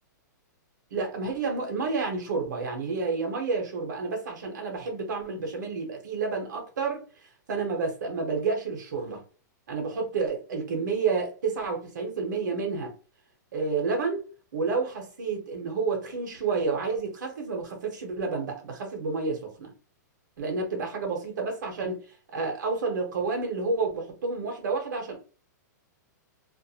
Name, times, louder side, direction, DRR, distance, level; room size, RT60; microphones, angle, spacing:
voice 1, 0.9-7.0 7.5-9.2 9.7-12.9 13.5-14.2 14.5-19.7 20.4-22.0 22.3-25.2, right 4 dB, 70° right, 1.0 m, -30 dB
2.5 x 2.1 x 2.8 m
hypercardioid pair, 170°, 10 cm